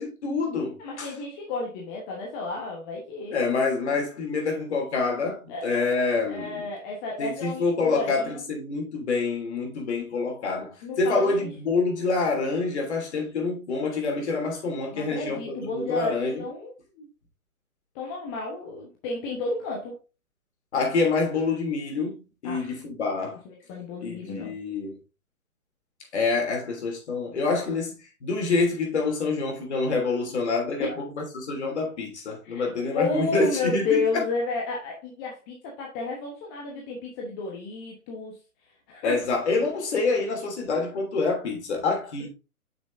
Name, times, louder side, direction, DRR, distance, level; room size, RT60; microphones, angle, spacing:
voice 1, 0.0-1.1 3.3-6.7 7.2-16.4 20.7-23.4 24.0-24.9 26.1-31.1 31.3-34.2 39.0-42.3, left 3 dB, 50° left, 3.1 m, -27 dB
voice 2, 0.8-3.4 5.5-8.4 10.8-11.5 14.9-17.1 17.9-20.0 22.4-22.7 23.4-24.6 30.8-31.0 32.4-38.4 38.9-39.2, left 3 dB, 15° left, 1.1 m, -32 dB
8.1 x 6.2 x 2.6 m
figure-of-eight pair, 130°, 44 cm